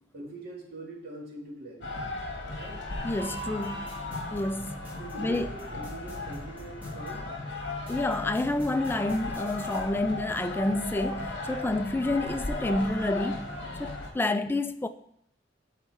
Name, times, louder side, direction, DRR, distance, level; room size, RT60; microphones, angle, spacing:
voice 1, 0.1-2.0 2.5-2.8 5.0-7.3, right 1 dB, 55° right, 1.8 m, -43 dB
sound 1, 1.8-14.1, left 2 dB, 65° left, 1.4 m, -36 dB
voice 2, 3.0-3.8 4.3-4.8 5.2-5.5 7.9-13.5 13.8-14.9, left 2 dB, 10° left, 0.3 m, -29 dB
sound 2, 3.4-7.1 7.9-9.8, equal, 10° right, 1.5 m, -50 dB
11.5 x 4.2 x 3.3 m
head